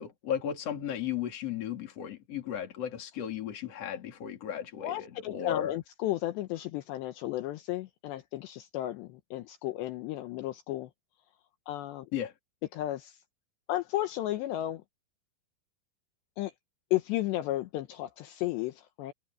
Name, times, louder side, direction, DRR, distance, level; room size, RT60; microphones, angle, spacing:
voice 1, 0.0-5.7 12.1-12.3, left 9 dB, 40° left, 3.2 m, -35 dB
voice 2, 4.8-10.9 11.7-12.1 12.7-13.1 13.7-14.8 16.4-16.5 16.9-19.1, left 15 dB, 75° left, 3.0 m, -33 dB
omnidirectional pair, 5.3 m